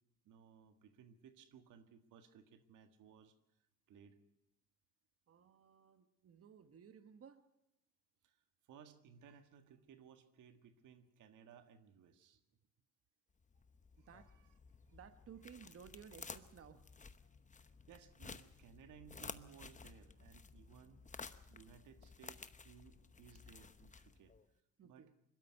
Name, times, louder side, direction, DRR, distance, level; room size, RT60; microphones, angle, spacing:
voice 1, 0.2-3.3 3.9-4.2 8.2-12.4 14.0-14.5 17.2-21.0 21.5-24.3 24.8-25.1, right 7 dB, 85° right, 8 dB, 1.7 m, -61 dB
voice 2, 5.3-7.4 14.0-14.3 14.9-16.9 24.8-25.1, right 7 dB, 50° right, 10 dB, 1.2 m, -58 dB
sound 1, 13.4-24.4, left 4 dB, 25° left, 0.9 m, -54 dB
22.0 x 12.5 x 9.4 m, 0.90 s
cardioid pair, 90°, 30 cm